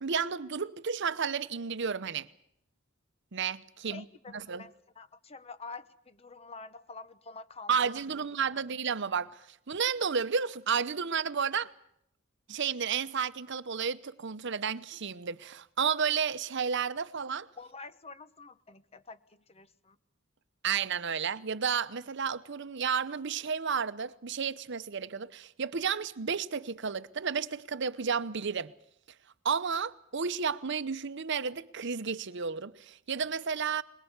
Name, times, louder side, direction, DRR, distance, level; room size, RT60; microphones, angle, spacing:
voice 1, 0.0-2.3 3.3-4.0 4.3-4.6 7.7-11.7 12.5-17.5 20.6-28.7 29.4-33.8, right 6 dB, 60° right, 0.8 m, -32 dB
voice 2, 3.9-7.9 8.4-8.6 17.6-20.0, left 4 dB, 30° left, 1.0 m, -47 dB
22.5 x 21.0 x 8.1 m
head